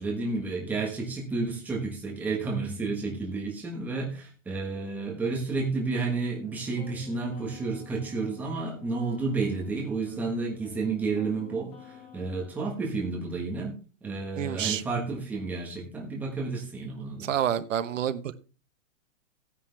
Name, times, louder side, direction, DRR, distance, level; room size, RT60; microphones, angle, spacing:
voice 1, 0.0-13.8 14.0-17.3, right 3 dB, 5° right, -1 dB, 1.3 m, -31 dB
sound 1, 6.4-12.5, left 7 dB, 10° left, 1.7 m, -51 dB
voice 2, 14.4-14.8 17.2-18.4, right 10 dB, 75° right, 14 dB, 1.1 m, -28 dB
14.0 x 9.6 x 3.3 m, 0.35 s
hypercardioid pair, 180°, 38 cm